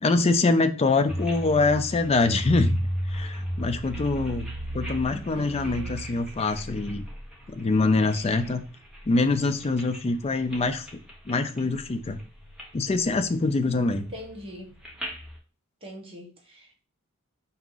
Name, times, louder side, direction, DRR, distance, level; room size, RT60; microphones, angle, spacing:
voice 1, 0.0-2.8 3.1-7.0 7.5-8.6 9.1-10.9 11.3-12.2 12.7-14.0, left 3 dB, 25° left, 7 dB, 0.4 m, -24 dB
sound 1, 1.1-8.5 8.9-10.0 10.4-10.6 10.9-11.8 12.1-12.6 13.0-15.4, equal, 5° right, 0.9 m, -34 dB
voice 2, 5.1-5.9 13.9-14.7 15.8-16.8, left 1 dB, 25° right, -1 dB, 1.2 m, -42 dB
4.6 x 2.8 x 3.9 m, 0.35 s
head